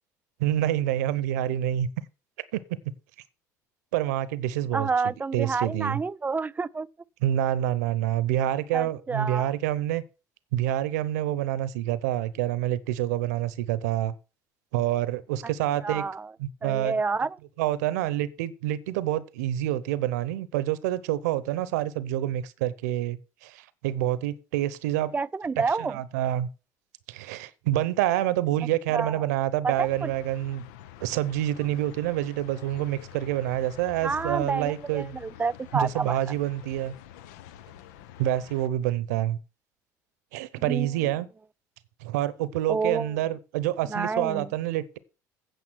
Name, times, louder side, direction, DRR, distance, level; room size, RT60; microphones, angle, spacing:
voice 1, 0.4-1.9 2.5-2.6 3.9-4.9 5.3-6.0 7.2-10.0 10.5-14.1 14.7-16.0 16.4-16.9 17.6-25.1 25.9-26.5 27.1-30.6 31.0-35.2 35.7-36.9 38.2-39.4 40.3-41.3 42.0-45.0, right 13 dB, 80° right, 0.8 m, -27 dB
voice 2, 4.7-6.9 8.7-9.5 15.8-16.3 16.6-17.4 25.1-26.0 28.9-29.3 29.6-30.1 34.0-36.2 40.6-40.9 42.7-43.2 43.9-44.5, right 4 dB, 20° right, 0.4 m, -29 dB
sound 1, 29.7-38.7, left 11 dB, 75° left, 0.8 m, -47 dB
9.1 x 6.8 x 6.2 m
hypercardioid pair, 70°, 9 cm